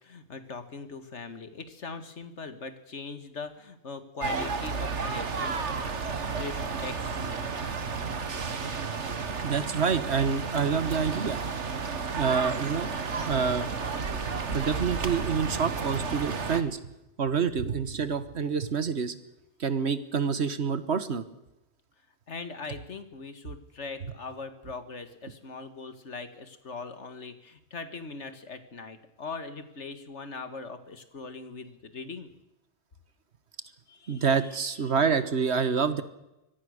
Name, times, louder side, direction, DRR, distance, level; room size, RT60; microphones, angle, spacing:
voice 1, 0.0-5.9 6.2-7.4 22.3-32.3 33.9-34.6, left 4 dB, 85° left, 10 dB, 2.1 m, -41 dB
sound 1, 4.2-16.6, right 5 dB, 90° right, 1.9 m, -32 dB
voice 2, 9.4-11.4 12.2-12.9 13.3-13.7 14.5-16.8 17.2-19.2 19.6-21.2 34.1-36.0, right 6 dB, 70° right, 12 dB, 1.6 m, -27 dB
24.5 x 18.5 x 6.6 m, 0.92 s
omnidirectional pair, 1.2 m